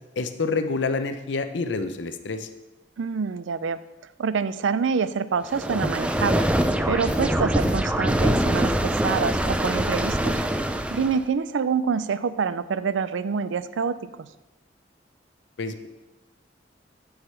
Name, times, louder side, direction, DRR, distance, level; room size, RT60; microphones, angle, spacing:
voice 1, 0.2-2.5 15.6-15.9, left 4 dB, 75° left, 9 dB, 0.6 m, -27 dB
voice 2, 3.0-3.8 4.2-6.5 6.9-10.4 10.9-14.3, right 6 dB, 90° right, 14 dB, 0.4 m, -26 dB
sound 1, 5.5-11.2, right 1 dB, 5° right, 0.3 m, -24 dB
6.4 x 4.8 x 6.8 m, 1.0 s
head